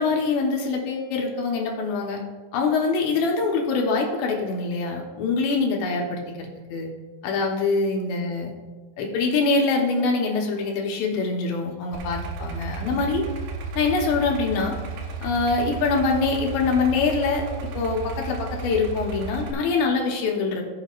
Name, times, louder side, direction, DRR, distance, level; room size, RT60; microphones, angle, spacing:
voice 1, 0.0-2.2 2.5-6.9 7.2-8.6 9.0-13.2 13.8-14.8 15.2-17.5 17.7-20.6, left 4 dB, 75° left, 0 dB, 3.0 m, -24 dB
Idling, 11.9-19.5, right 4 dB, 80° right, 2.1 m, -33 dB
18.0 x 6.4 x 2.4 m, 1.4 s
omnidirectional pair, 5.2 m